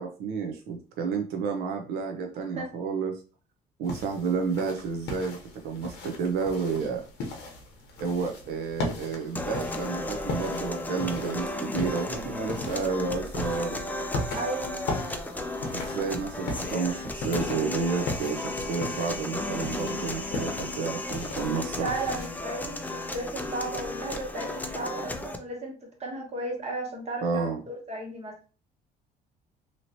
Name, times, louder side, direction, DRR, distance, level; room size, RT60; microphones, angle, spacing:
voice 1, 0.0-3.2 3.8-5.4 5.6-7.0 8.0-13.8 15.7-21.9 27.2-27.6, right 5 dB, 75° right, 3 dB, 0.6 m, -30 dB
voice 2, 2.3-2.7 14.3-14.8 21.8-28.3, right 2 dB, 40° right, 1 dB, 1.2 m, -35 dB
sound 1, 3.8-22.4, left 2 dB, 80° left, 0.8 m, -38 dB
sound 2, 9.4-25.4, left 2 dB, 10° left, 0.4 m, -34 dB
2.9 x 2.8 x 2.7 m, 0.36 s
cardioid pair, 110°, 17 cm